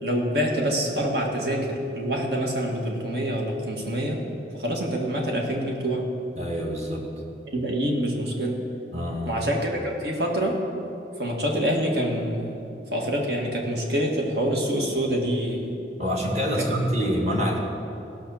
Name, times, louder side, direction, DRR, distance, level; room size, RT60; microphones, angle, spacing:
voice 1, 0.0-4.2 4.5-6.1 7.5-8.6 9.3-10.6 11.2-12.5 12.9-15.7 16.6-16.7 17.3-17.4, equal, 70° right, 0 dB, 1.9 m, -26 dB
voice 2, 6.4-7.1 8.9-9.4 16.0-17.6, equal, 40° right, 0 dB, 1.8 m, -26 dB
17.0 x 5.7 x 7.1 m, 2.8 s
head